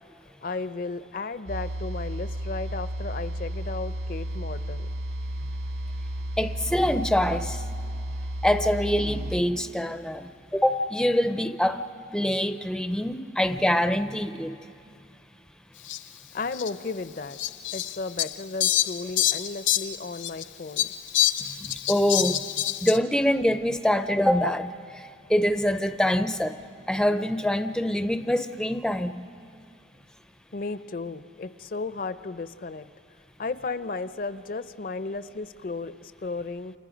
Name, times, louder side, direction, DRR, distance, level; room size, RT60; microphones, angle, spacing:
voice 1, 0.4-4.9 16.3-17.4 17.7-20.9 30.5-32.9 33.4-36.7, left 3 dB, 50° left, 13 dB, 0.5 m, -34 dB
sound 1, 1.5-9.4, right 1 dB, 65° right, 0.5 m, -33 dB
voice 2, 6.4-7.6 8.4-11.8 12.1-14.6 21.4-22.4 22.8-26.6 26.9-29.3, left 1 dB, 5° left, 9 dB, 0.5 m, -25 dB
Fowl, 15.9-16.0 16.5-16.7 17.4-20.4 20.8-23.0, left 12 dB, 80° left, 0.7 m, -26 dB
29.0 x 28.0 x 5.1 m, 2.5 s
head